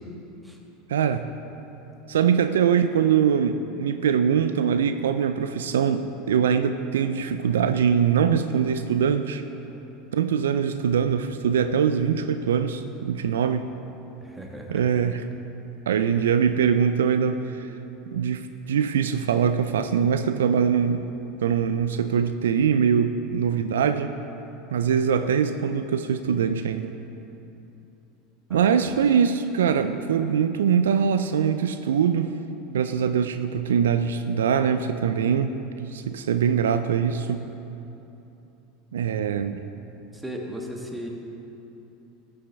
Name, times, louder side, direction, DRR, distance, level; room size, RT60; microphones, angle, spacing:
voice 1, 0.9-1.3 2.1-9.4 10.1-13.7 14.7-15.3 15.9-17.7 18.1-21.1 21.4-24.1 24.7-26.9 28.5-32.4 32.7-37.5 38.9-39.6, right 7 dB, 80° right, 9 dB, 0.3 m, -23 dB
voice 2, 14.2-14.8 28.5-29.0 40.1-41.1, equal, 10° right, 0 dB, 1.4 m, -37 dB
13.5 x 6.8 x 3.5 m, 3.0 s
hypercardioid pair, 85°, 0 cm